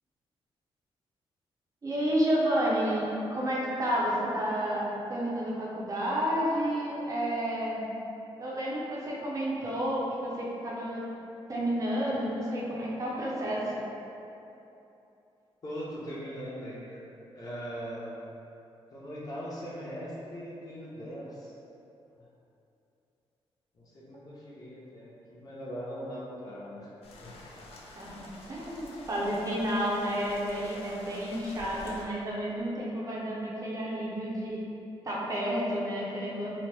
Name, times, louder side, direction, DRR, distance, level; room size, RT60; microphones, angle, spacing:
voice 1, 1.8-7.8 8.4-11.0 11.5-13.8 28.0-34.6 35.0-36.5, equal, 35° right, -6 dB, 0.5 m, -30 dB
voice 2, 15.6-17.0 17.3-18.1 18.9-21.5 23.7-26.9 27.2-27.5, equal, 40° left, -7 dB, 0.7 m, -40 dB
sound 1, 27.0-32.0, left 2 dB, 75° left, 0.4 m, -48 dB
2.8 x 2.0 x 3.2 m, 2.8 s
cardioid pair, 125°, 10 cm